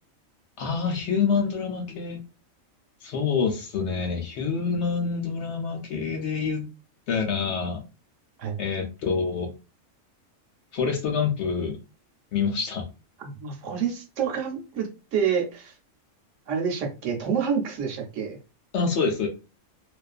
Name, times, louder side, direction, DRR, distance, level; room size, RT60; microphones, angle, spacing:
voice 1, 0.6-2.2 3.0-6.6 7.1-7.8 8.6-9.5 10.7-11.8 12.3-12.8 18.7-19.3, left 5 dB, 65° left, 3 dB, 0.8 m, -26 dB
voice 2, 13.2-15.7 16.5-18.4, right 7 dB, 70° right, 2 dB, 1.0 m, -28 dB
2.4 x 2.3 x 2.3 m, 0.30 s
omnidirectional pair, 1.4 m